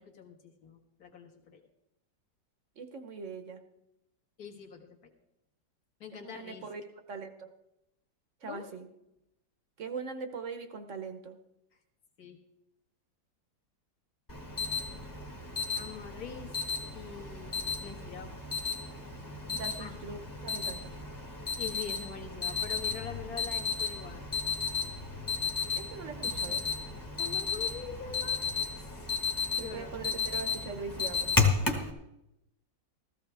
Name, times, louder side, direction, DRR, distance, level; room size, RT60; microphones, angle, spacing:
voice 1, 0.0-1.6 4.4-5.1 6.0-6.7 8.5-8.7 12.2-12.4 15.8-16.5 16.9-18.3 19.8-20.0 21.6-24.2 27.2-28.5 28.8-29.1 29.6-29.9, left 7 dB, 55° left, 1 dB, 2.1 m, -44 dB
voice 2, 2.8-3.6 6.1-6.8 7.1-7.5 8.4-8.9 9.8-11.4 19.5-20.9 25.8-26.6 29.6-31.4, right 4 dB, 50° right, 7 dB, 1.2 m, -41 dB
Alarm, 14.3-31.9, left 4 dB, 10° left, 1.3 m, -33 dB
15.5 x 14.5 x 3.4 m, 0.86 s
omnidirectional pair, 2.0 m